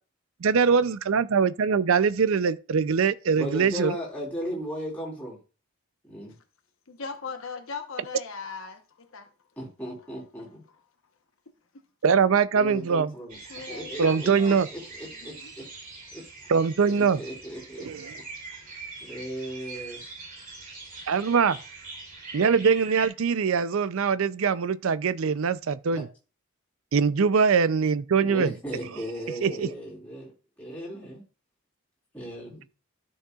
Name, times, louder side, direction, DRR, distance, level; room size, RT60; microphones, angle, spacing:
voice 1, 0.4-3.9 12.0-13.1 14.0-14.7 16.5-17.2 17.8-18.1 21.1-21.6 22.3-26.1 26.9-28.5 29.4-29.7, right 6 dB, 75° right, 0.5 m, -22 dB
voice 2, 3.3-5.4 6.0-6.4 9.6-10.6 12.5-13.4 13.7-15.6 16.1-16.2 16.8-17.9 18.1-18.2 19.0-20.0 25.9-26.0 28.2-30.3 30.6-31.2 32.1-32.6, equal, 5° left, 3.5 m, -36 dB
voice 3, 6.9-9.3 13.5-14.5 15.3-15.5, left 5 dB, 70° left, 1.0 m, -39 dB
sound 1, 13.3-23.1, right 3 dB, 40° right, 3.2 m, -42 dB
12.5 x 6.3 x 2.4 m
head